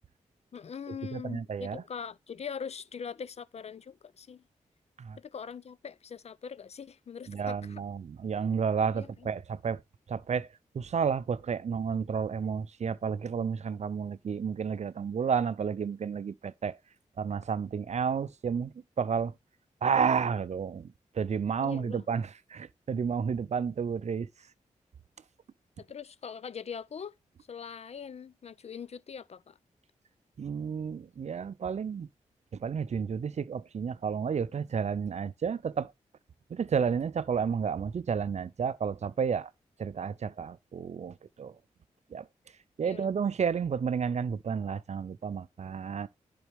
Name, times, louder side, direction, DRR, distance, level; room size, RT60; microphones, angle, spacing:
voice 1, 0.5-4.4 5.2-7.8 8.9-9.3 21.6-22.1 25.8-27.1 27.5-29.6 42.8-43.1, left 6 dB, 50° left, 0.4 m, -42 dB
voice 2, 1.1-1.8 5.1-5.2 7.3-9.8 10.1-10.5 10.7-16.8 17.2-18.7 19.0-19.3 19.8-20.9 21.2-24.3 30.4-32.1 32.6-35.9 36.5-39.5 39.8-41.5 42.1-42.2 42.8-46.1, right 6 dB, 55° right, 0.5 m, -31 dB
10.5 x 4.2 x 3.4 m
supercardioid pair, 40°, 14 cm